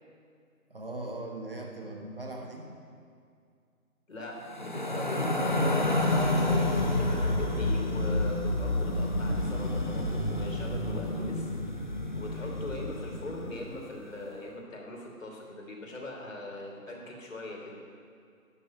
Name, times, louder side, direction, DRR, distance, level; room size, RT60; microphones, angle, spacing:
voice 1, 0.7-2.7, right 2 dB, 40° right, 1 dB, 1.3 m, -39 dB
voice 2, 4.1-5.4 5.7-11.5 12.1-17.8, left 2 dB, 60° left, -1 dB, 3.3 m, -41 dB
sound 1, 4.5-13.8, left 1 dB, 35° left, 0.8 m, -29 dB
12.5 x 7.0 x 9.0 m, 2.2 s
figure-of-eight pair, 175°, 44 cm